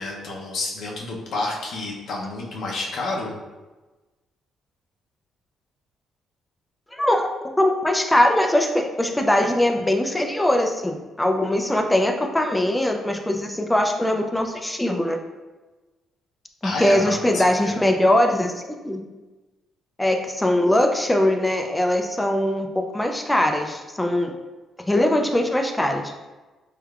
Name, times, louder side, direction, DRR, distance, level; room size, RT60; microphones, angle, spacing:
voice 1, 0.0-3.4 16.6-17.8, left 2 dB, 70° left, -2 dB, 0.6 m, -30 dB
voice 2, 6.9-7.3 7.6-15.2 16.6-19.0 20.0-24.3 24.9-26.0, left 1 dB, 10° left, 4 dB, 0.3 m, -21 dB
3.3 x 3.3 x 2.3 m, 1.2 s
cardioid pair, 90°, 0 cm